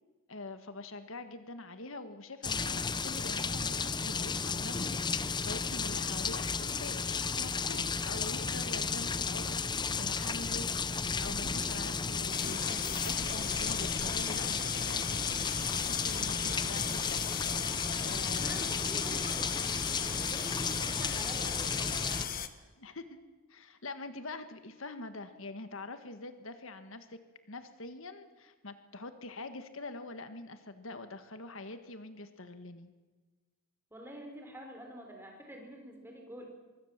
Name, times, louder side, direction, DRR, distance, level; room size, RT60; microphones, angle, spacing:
voice 1, 0.3-15.2 15.5-17.2 18.0-18.7 22.8-23.2 23.5-27.2 27.5-32.9, left 2 dB, 65° left, 9 dB, 1.6 m, -45 dB
sound 1, 2.4-22.3, left 5 dB, 20° left, 0.7 m, -33 dB
sound 2, 12.3-22.5, left 8 dB, 40° left, 1.4 m, -38 dB
voice 2, 18.4-19.5 19.9-22.3 33.9-36.5, equal, 10° right, 2 dB, 4.9 m, -47 dB
24.0 x 23.5 x 7.5 m, 1.3 s
head